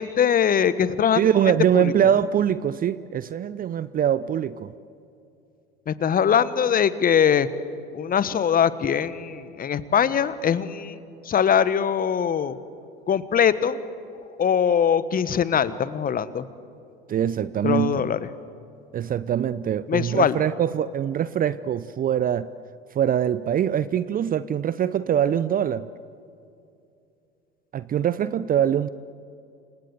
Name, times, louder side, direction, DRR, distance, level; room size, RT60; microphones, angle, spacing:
voice 1, 0.0-1.2 1.7-1.9 5.9-7.5 7.9-11.0 11.2-12.6 13.1-13.8 14.1-16.5 17.6-18.2 19.9-20.4, left 8 dB, 30° left, 15 dB, 1.4 m, -22 dB
voice 2, 1.1-4.7 17.1-18.0 18.9-22.5 22.9-25.9 27.7-28.9, right 9 dB, 30° right, 16 dB, 0.7 m, -23 dB
29.0 x 25.5 x 6.9 m, 2.6 s
figure-of-eight pair, 70°, 29 cm